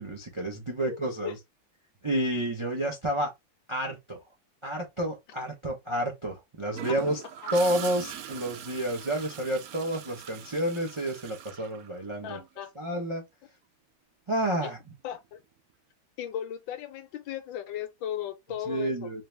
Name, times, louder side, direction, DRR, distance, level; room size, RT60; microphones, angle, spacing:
voice 1, 0.0-1.4 2.0-3.3 3.7-4.2 4.6-7.2 7.5-12.4 12.8-13.2 14.3-14.8 18.7-19.2, right 1 dB, 50° right, 0.3 m, -30 dB
voice 2, 0.8-1.3 7.4-7.5 12.2-12.7 14.6-14.7 15.0-15.4 16.2-19.1, left 10 dB, 75° left, 1.4 m, -36 dB
Gurgling / Toilet flush, 6.7-12.5 14.5-14.7, right 9 dB, 90° right, 0.8 m, -41 dB
3.8 x 2.8 x 3.2 m
omnidirectional pair, 2.2 m